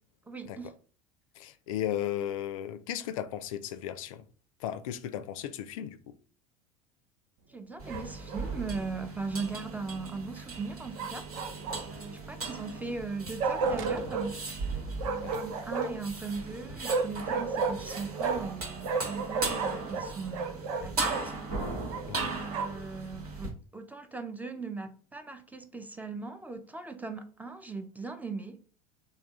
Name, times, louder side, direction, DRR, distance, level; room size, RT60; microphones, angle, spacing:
voice 1, 0.3-0.7 7.5-11.3 11.9-14.4 15.0-21.4 22.3-28.6, right 4 dB, 10° right, 0.4 m, -39 dB
voice 2, 1.4-4.2 4.6-6.0 15.2-15.4 22.1-22.4, left 11 dB, 65° left, 0.4 m, -35 dB
sound 1, 7.8-23.5, right 3 dB, 80° right, 1.2 m, -38 dB
Bark, 7.9-8.5 11.0-12.1 13.4-14.3 15.0-16.1 16.8-18.6 18.8-21.3 21.9-22.9, right 4 dB, 60° right, 0.6 m, -33 dB
3.4 x 2.1 x 3.7 m
figure-of-eight pair, 70°, 19 cm